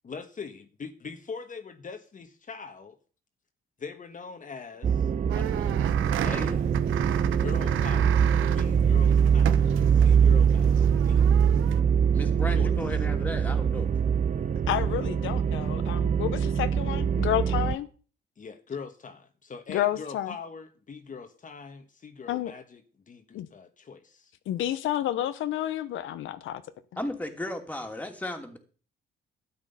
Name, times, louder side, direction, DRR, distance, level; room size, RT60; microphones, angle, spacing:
voice 1, 0.0-3.0 3.8-5.1 6.2-6.6 7.3-8.3 8.5-11.3 12.6-12.7 18.4-22.8 23.1-24.3, left 5 dB, 40° left, 1.4 m, -42 dB
sound 1, 4.8-17.8, right 7 dB, 40° right, 0.7 m, -23 dB
voice 2, 5.2-5.7 6.2-6.6 12.1-13.9 27.0-28.6, left 1 dB, 10° left, 2.8 m, -35 dB
sound 2, 5.3-11.8, right 12 dB, 80° right, 0.8 m, -33 dB
voice 3, 14.7-17.9 19.7-20.3 22.3-22.5 23.3-23.5 24.5-26.6, left 12 dB, 80° left, 0.9 m, -30 dB
12.5 x 8.9 x 5.5 m
cardioid pair, 90°, 20 cm